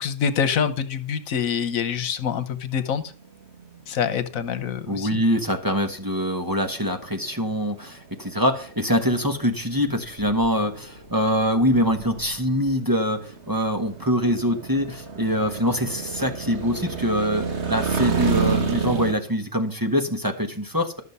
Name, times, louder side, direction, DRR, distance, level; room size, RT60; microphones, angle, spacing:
voice 1, 0.0-3.0 3.9-5.1, left 7 dB, 85° left, 11 dB, 1.4 m, -25 dB
sound 1, 3.0-19.1, right 6 dB, 55° right, 1.6 m, -32 dB
voice 2, 4.9-21.0, equal, 15° right, 3 dB, 1.1 m, -24 dB
12.5 x 6.5 x 5.4 m, 0.44 s
omnidirectional pair, 1.4 m